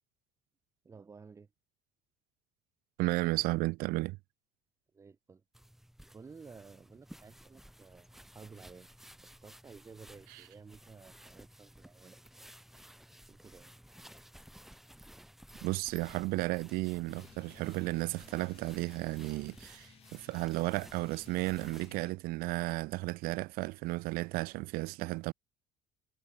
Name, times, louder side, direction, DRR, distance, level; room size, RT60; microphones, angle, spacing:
voice 1, 0.8-1.5 4.9-5.4 6.1-8.9 9.4-12.5 13.3-13.7, right 5 dB, 15° right, 1.3 m, -53 dB
voice 2, 3.0-4.2 10.3-10.4 15.6-25.3, right 22 dB, 60° right, 0.5 m, -33 dB
sound 1, 5.5-22.0, equal, ahead, 3.6 m, -55 dB
sound 2, 17.1-22.1, left 11 dB, 35° left, 0.8 m, -59 dB
cardioid pair, 160°, 17 cm